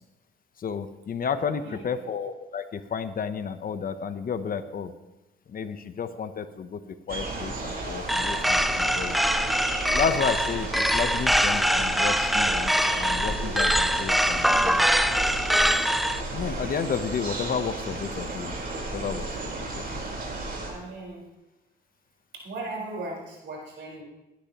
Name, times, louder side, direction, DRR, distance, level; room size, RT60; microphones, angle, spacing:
voice 1, 0.6-4.9 5.5-6.8 7.1-9.2 9.9-12.7 13.0-14.9 16.3-18.5 18.9-20.1, left 6 dB, 45° left, 11 dB, 0.8 m, -31 dB
voice 2, 1.6-2.0 20.6-21.2 22.4-24.0, right 2 dB, 65° right, -2 dB, 4.5 m, -37 dB
sound 1, 7.1-20.7, right 2 dB, 50° right, 4.1 m, -33 dB
sound 2, 8.1-16.2, equal, ahead, 0.4 m, -24 dB
19.0 x 10.5 x 3.0 m, 1.0 s
cardioid pair, 90°, 20 cm